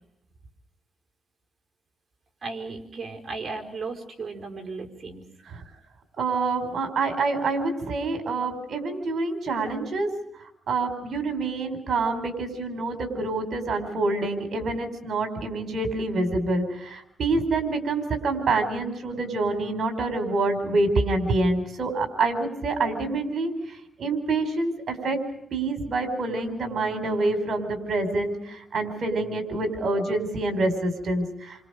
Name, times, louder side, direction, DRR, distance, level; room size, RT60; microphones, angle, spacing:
voice 1, 2.4-5.2, right 4 dB, 40° right, 3 dB, 4.8 m, -35 dB
voice 2, 6.2-10.1 10.7-16.6 16.9-23.5 24.0-25.2 25.5-28.3 28.7-31.2, right 3 dB, 60° right, 7 dB, 5.0 m, -26 dB
29.0 x 25.5 x 5.2 m, 0.78 s
cardioid pair, 110°, 0 cm